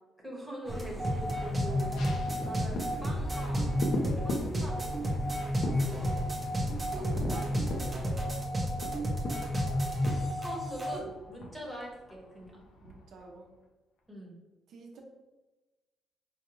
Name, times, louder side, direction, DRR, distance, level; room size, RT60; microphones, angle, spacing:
voice 1, 0.2-2.0 2.4-3.8 4.2-6.2 10.4-12.7 14.1-14.4, right 1 dB, 5° left, -2 dB, 1.0 m, -43 dB
sound 1, 0.6-8.4, left 1 dB, 25° left, 0.5 m, -43 dB
sound 2, 0.7-11.0, equal, 15° right, 0.6 m, -31 dB
sound 3, 2.0-13.6 14.0-14.1, left 1 dB, 65° left, 0.6 m, -42 dB
voice 2, 6.6-9.4 12.8-13.5 14.7-15.0, right 3 dB, 65° right, 0 dB, 0.7 m, -51 dB
4.8 x 2.3 x 3.0 m, 1.1 s
cardioid pair, 145°, 0 cm